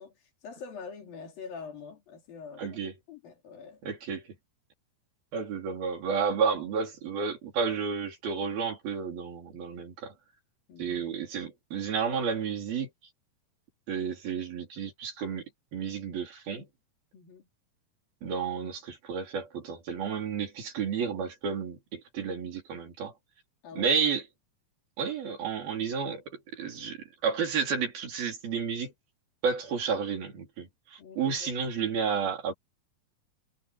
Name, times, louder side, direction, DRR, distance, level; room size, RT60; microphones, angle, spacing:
voice 1, 0.0-2.8 3.1-3.8 10.7-11.1 17.1-17.5 23.6-24.0 31.0-31.5, left 5 dB, 70° left, 5.4 m, -45 dB
voice 2, 2.6-2.9 3.8-4.3 5.3-10.1 10.8-12.9 13.9-15.5 15.7-16.7 18.2-23.1 23.8-24.2 25.0-28.9 29.4-32.5, right 6 dB, 80° right, 6.0 m, -31 dB
omnidirectional pair, 4.2 m